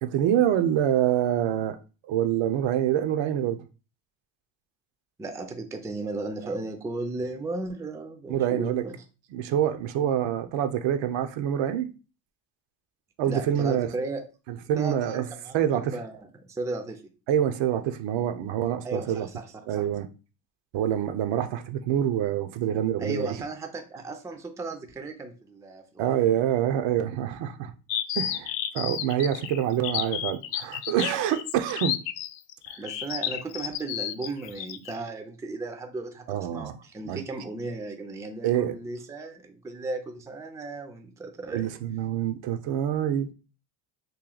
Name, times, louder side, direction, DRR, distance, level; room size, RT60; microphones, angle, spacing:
voice 1, 0.0-1.8 2.1-3.6 6.4-6.5 8.3-8.9 9.3-11.9 13.2-13.9 14.5-16.0 17.3-19.3 19.7-20.1 20.7-23.4 26.0-27.7 28.2-32.0 32.7-32.9 36.3-37.2 38.4-38.8 41.5-43.3, right 10 dB, 65° right, 0.6 m, -26 dB
voice 2, 5.2-9.0 13.2-14.2 14.8-17.0 18.8-19.4 19.7-19.9 23.0-26.3 32.8-41.7, right 3 dB, 5° right, 0.4 m, -35 dB
sound 1, 27.9-34.9, left 11 dB, 65° left, 0.5 m, -31 dB
3.0 x 2.7 x 3.9 m
cardioid pair, 105°, 48 cm